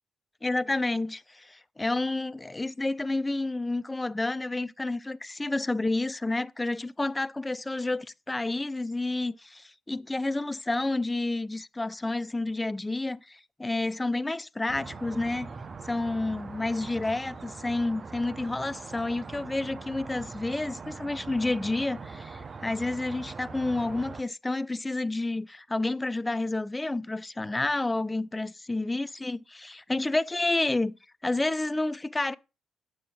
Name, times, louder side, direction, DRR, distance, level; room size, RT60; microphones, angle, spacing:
voice 1, 0.4-15.5 15.8-30.9 31.2-32.4, left 2 dB, 20° left, 0.4 m, -30 dB
sound 1, 14.7-24.2, right 4 dB, 45° right, 0.7 m, -42 dB
7.4 x 6.9 x 2.3 m
hypercardioid pair, 50°, 0 cm